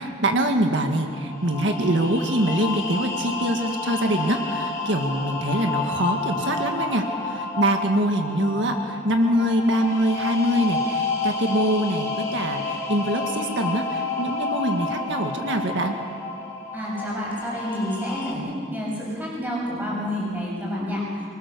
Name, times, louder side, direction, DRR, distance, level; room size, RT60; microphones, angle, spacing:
voice 1, 0.0-16.0, right 1 dB, 70° right, 4 dB, 1.7 m, -24 dB
sound 1, 1.0-18.3, left 3 dB, 15° left, 3.7 m, -30 dB
voice 2, 16.7-21.0, equal, 10° right, -5 dB, 7.5 m, -29 dB
25.5 x 22.0 x 6.9 m, 2.2 s
head